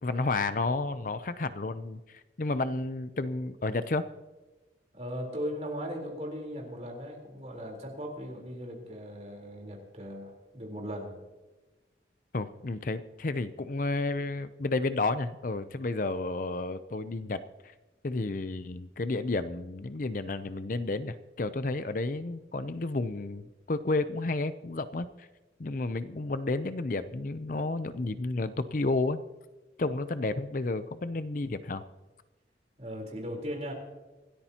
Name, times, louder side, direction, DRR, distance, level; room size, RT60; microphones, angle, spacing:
voice 1, 0.0-4.1 12.3-17.7 18.0-25.3 25.6-29.2 29.8-31.8, left 2 dB, 45° left, 12 dB, 0.6 m, -31 dB
voice 2, 4.9-11.1 32.8-33.7, equal, 35° right, 1 dB, 3.8 m, -38 dB
26.0 x 13.5 x 2.9 m, 1.2 s
head